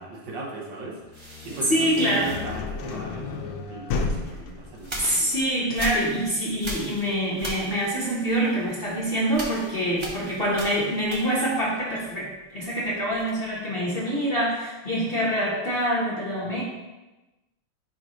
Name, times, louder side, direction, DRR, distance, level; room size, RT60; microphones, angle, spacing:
voice 1, 0.0-5.3 16.4-16.6, right 2 dB, 70° right, -2 dB, 1.8 m, -37 dB
sound 1, 1.0-10.8, left 4 dB, 80° left, 1.4 m, -35 dB
sound 2, 1.1-3.3 4.0-11.7 11.9-13.6, right 1 dB, 30° right, 0.5 m, -40 dB
voice 2, 1.7-2.3 5.0-16.6, equal, 35° left, -5 dB, 1.1 m, -25 dB
10.0 x 4.0 x 3.1 m, 1.1 s
omnidirectional pair, 2.1 m